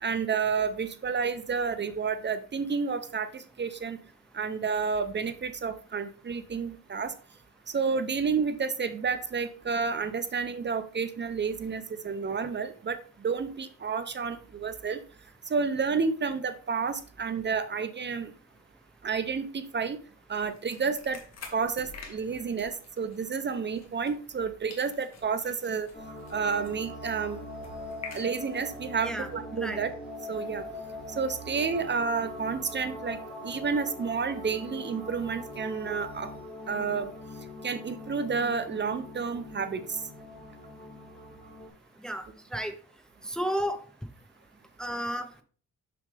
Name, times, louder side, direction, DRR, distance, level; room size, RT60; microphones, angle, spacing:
voice 1, 0.0-4.0 4.3-7.1 7.7-13.0 13.2-15.0 15.5-18.3 19.0-20.0 20.3-21.2 21.5-25.9 26.3-27.4 28.1-29.9 30.3-30.6 31.2-36.3 36.7-37.1 37.6-39.8, right 5 dB, 35° right, 10 dB, 0.7 m, -30 dB
sound 1, 20.3-24.4 24.7-28.8, left 5 dB, 55° left, 2.1 m, -49 dB
sound 2, 25.9-41.7, left 1 dB, 25° left, 4.0 m, -42 dB
voice 2, 43.3-43.8 44.8-45.3, equal, ahead, 7 dB, 0.7 m, -31 dB
6.8 x 6.3 x 3.4 m, 0.40 s
cardioid pair, 115°, 32 cm